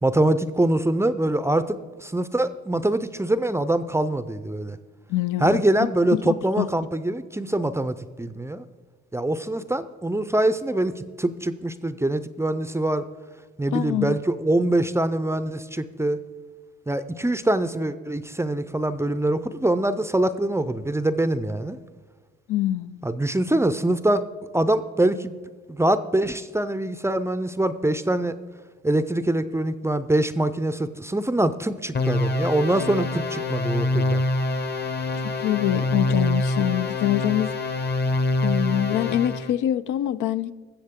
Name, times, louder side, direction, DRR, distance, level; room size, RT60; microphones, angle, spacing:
voice 1, 0.0-4.8 5.4-8.6 9.1-13.0 13.6-16.2 16.9-21.8 23.0-24.3 24.5-25.3 25.7-28.3 28.8-34.2, right 1 dB, 10° right, 0.4 m, -24 dB
voice 2, 5.1-5.6 6.2-6.7 13.7-14.2 22.5-23.0 35.2-37.5 38.4-40.5, left 12 dB, 80° left, 0.5 m, -25 dB
sound 1, 31.9-39.5, left 2 dB, 35° left, 0.9 m, -25 dB
20.0 x 7.3 x 3.6 m
cardioid pair, 90°, 30 cm